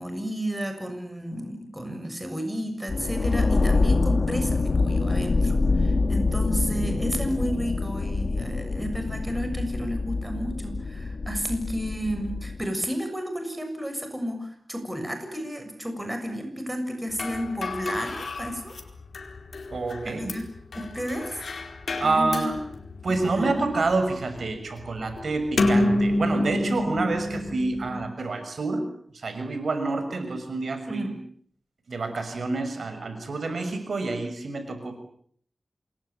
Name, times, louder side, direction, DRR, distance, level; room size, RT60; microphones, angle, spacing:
voice 1, 0.0-18.7 20.0-20.4 20.7-21.4 22.0-22.4 23.2-23.7 30.9-31.1, equal, 10° right, 6 dB, 6.9 m, -32 dB
sound 1, 2.9-12.7, left 3 dB, 50° left, 2.6 m, -25 dB
sound 2, 17.1-28.1, left 1 dB, 65° left, 4.5 m, -29 dB
voice 2, 19.7-20.3 22.0-22.6 23.0-28.9 29.1-31.2 31.9-34.9, right 3 dB, 65° right, 8 dB, 6.4 m, -28 dB
28.0 x 22.0 x 8.7 m, 0.63 s
wide cardioid pair, 120°, 0 cm